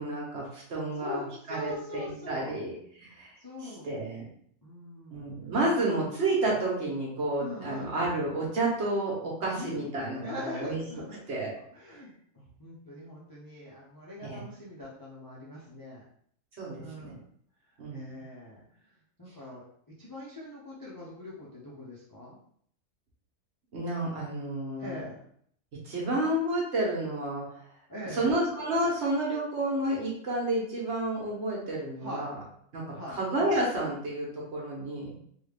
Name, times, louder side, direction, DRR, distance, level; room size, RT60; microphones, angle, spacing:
voice 1, 0.0-3.3 3.6-4.2 5.1-10.8 11.3-11.5 14.2-14.5 16.6-17.1 17.8-18.2 23.7-25.0 25.8-27.5 28.0-32.4 32.7-35.1, right 1 dB, 55° right, -3 dB, 1.2 m, -30 dB
voice 2, 1.0-2.6 3.4-3.9 4.6-5.3 7.4-8.0 9.5-9.9 10.2-11.2 11.6-16.0 16.8-17.2 17.9-18.6 19.2-19.7 20.0-22.4 24.8-25.2 27.9-28.4 32.0-32.3 32.9-33.2, left 1 dB, 25° left, -6 dB, 0.5 m, -42 dB
3.5 x 2.4 x 3.3 m, 0.63 s
omnidirectional pair, 1.5 m